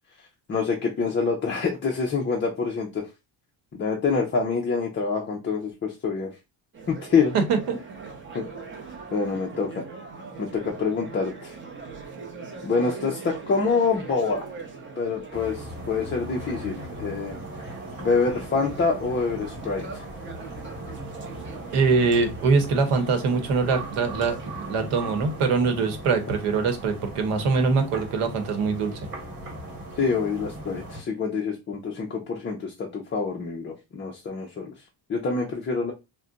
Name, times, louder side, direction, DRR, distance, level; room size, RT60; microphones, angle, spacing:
voice 1, 0.5-3.1 3.7-6.4 6.9-7.3 8.3-8.5 9.1-9.8 10.4-11.5 12.6-14.5 15.0-17.4 18.0-20.1 30.0-34.7 35.1-35.9, left 4 dB, 25° left, 0 dB, 0.4 m, -26 dB
sound 1, 6.7-25.5, right 4 dB, 25° right, 0.7 m, -41 dB
voice 2, 7.3-7.8 21.7-24.4 24.7-29.0, right 4 dB, 85° right, 6 dB, 1.0 m, -23 dB
sound 2, 15.3-31.0, right 1 dB, 45° right, 1.3 m, -39 dB
2.3 x 2.2 x 3.8 m, 0.25 s
cardioid pair, 150°, 50 cm